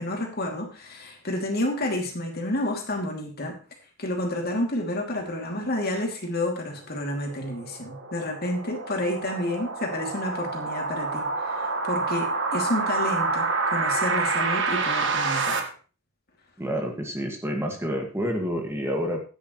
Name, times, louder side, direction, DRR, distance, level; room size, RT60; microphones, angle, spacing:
voice 1, 0.0-3.6 4.0-15.6, left 1 dB, 50° left, 1 dB, 2.8 m, -30 dB
sound 1, 6.9-15.6, right 4 dB, 60° right, 1.7 m, -28 dB
voice 2, 16.6-19.2, equal, 15° right, 1 dB, 2.0 m, -28 dB
13.5 x 9.7 x 3.2 m, 0.35 s
head